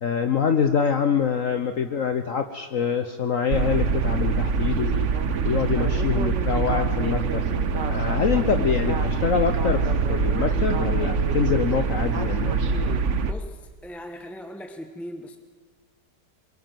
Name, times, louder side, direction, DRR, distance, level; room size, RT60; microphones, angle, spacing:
voice 1, 0.0-4.9 5.4-7.5 7.9-12.6, left 7 dB, 55° left, 7 dB, 1.2 m, -25 dB
sound 1, 3.5-13.3, right 5 dB, 50° right, 1.0 m, -24 dB
Speech synthesizer, 4.7-13.0, right 3 dB, 85° right, 2.8 m, -34 dB
voice 2, 13.3-15.4, equal, ahead, 5 dB, 1.2 m, -39 dB
22.5 x 22.5 x 7.7 m, 1.5 s
omnidirectional pair, 1.9 m